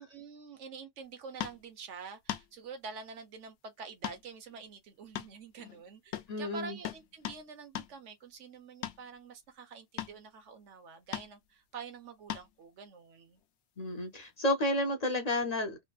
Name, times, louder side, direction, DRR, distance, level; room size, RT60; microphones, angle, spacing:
voice 1, 0.0-13.4, right 5 dB, 85° right, 1.2 m, -47 dB
sound 1, 1.4-1.6 2.3-2.5 4.0-4.2 4.5-4.6 5.1-5.8 6.1-6.3 6.8-7.4 7.7-7.9 8.8-9.0 10.0-10.2 11.1-11.3 12.3-12.5 14.2-14.3, left 11 dB, 80° left, 0.9 m, -39 dB
voice 2, 6.3-6.8 13.8-15.8, left 1 dB, 45° left, 0.6 m, -31 dB
3.4 x 2.6 x 2.3 m
omnidirectional pair, 1.2 m